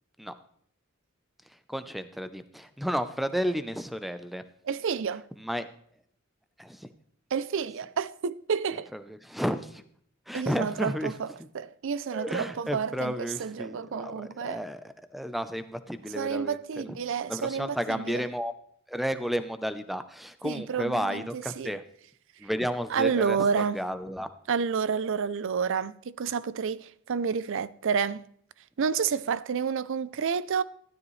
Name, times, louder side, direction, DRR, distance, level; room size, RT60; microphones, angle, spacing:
voice 1, 1.7-4.4 5.4-5.7 6.6-6.9 8.9-9.8 10.3-11.1 12.1-16.9 17.3-18.5 18.9-21.8 22.4-24.3, equal, ahead, 0.6 m, -32 dB
voice 2, 4.7-5.2 7.3-8.9 10.3-11.3 11.5-14.6 16.1-18.3 20.4-21.7 22.9-23.8 24.5-28.2 28.8-30.6, right 6 dB, 60° right, 0.4 m, -29 dB
13.5 x 12.0 x 3.2 m
head